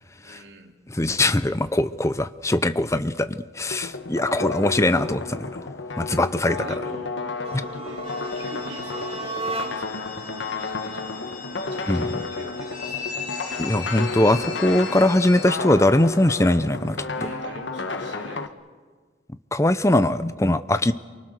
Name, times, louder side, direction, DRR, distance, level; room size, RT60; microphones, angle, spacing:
voice 1, 0.2-0.7 6.5-8.1 8.3-11.2 11.6-13.3 17.1-18.6, right 2 dB, 80° right, 3 dB, 2.9 m, -44 dB
voice 2, 0.9-5.5 6.0-6.6 11.9-12.0 13.6-17.0 19.5-20.9, left 1 dB, 15° left, 12 dB, 0.7 m, -21 dB
sound 1, 3.7-18.5, left 3 dB, 85° left, 1.3 m, -32 dB
sound 2, 7.3-10.1, right 3 dB, 30° right, 2.1 m, -34 dB
sound 3, 8.0-15.5, left 6 dB, 50° left, 6.2 m, -37 dB
29.5 x 24.0 x 6.6 m, 1.5 s
head